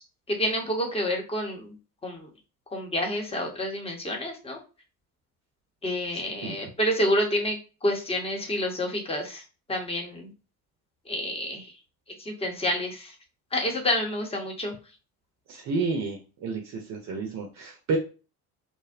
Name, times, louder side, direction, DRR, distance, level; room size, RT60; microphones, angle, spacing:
voice 1, 0.3-1.7 2.0-2.3 2.7-4.6 5.8-9.4 9.7-10.3 11.1-11.7 12.2-13.1 13.5-14.7, left 1 dB, 15° left, 1 dB, 0.8 m, -28 dB
voice 2, 15.5-18.0, right 4 dB, 40° right, 2 dB, 0.6 m, -30 dB
2.6 x 2.0 x 2.4 m, 0.33 s
figure-of-eight pair, 55°, 45 cm